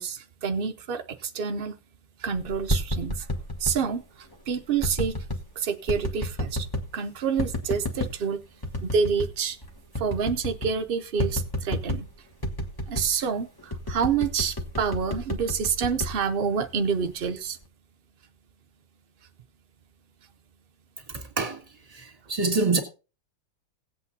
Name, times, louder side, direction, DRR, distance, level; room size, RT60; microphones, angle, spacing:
voice 1, 0.0-1.8 2.2-3.3 3.6-5.2 5.6-6.7 6.9-8.4 8.8-9.6 10.0-12.1 12.9-17.6, right 6 dB, 85° right, 0.5 m, -28 dB
sound 1, 2.5-3.8 4.8-5.4 5.9-6.9 7.4-8.2 8.6-9.4 9.6-9.7 10.0-10.8 11.2-12.1 12.4-13.2 13.7-16.8 17.2-17.6, left 1 dB, 15° left, 0.9 m, -30 dB
voice 2, 21.1-21.6 21.9-22.8, right 3 dB, 20° right, 2.0 m, -26 dB
17.5 x 8.2 x 2.7 m
omnidirectional pair, 1.9 m